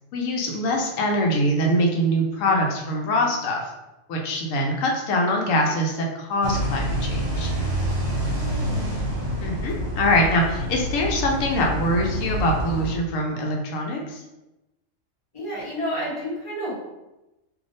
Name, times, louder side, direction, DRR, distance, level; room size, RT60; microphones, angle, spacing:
voice 1, 0.1-3.7 4.1-7.5 9.4-14.2, left 1 dB, 85° left, 0 dB, 1.0 m, -23 dB
sound 1, 6.4-12.9, equal, 60° right, 1.1 m, -27 dB
voice 2, 8.1-9.0 15.3-16.8, equal, 25° left, -6 dB, 1.0 m, -31 dB
3.3 x 2.7 x 2.5 m, 0.98 s
omnidirectional pair, 1.3 m